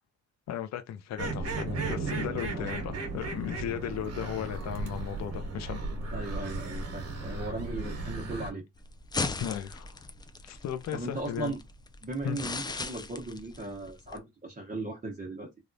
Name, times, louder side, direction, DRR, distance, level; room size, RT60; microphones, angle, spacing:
voice 1, 0.5-5.8 9.4-10.0 10.4-11.5 12.2-12.4, left 10 dB, 60° left, 0.6 m, -36 dB
sound 1, 1.2-8.5, right 3 dB, 55° right, 1.2 m, -35 dB
voice 2, 6.1-8.6 10.9-11.6 12.0-15.5, right 2 dB, 25° right, 1.0 m, -37 dB
sound 2, 8.8-14.2, left 3 dB, 15° left, 0.4 m, -38 dB
3.3 x 2.3 x 2.6 m
cardioid pair, 90°, 30 cm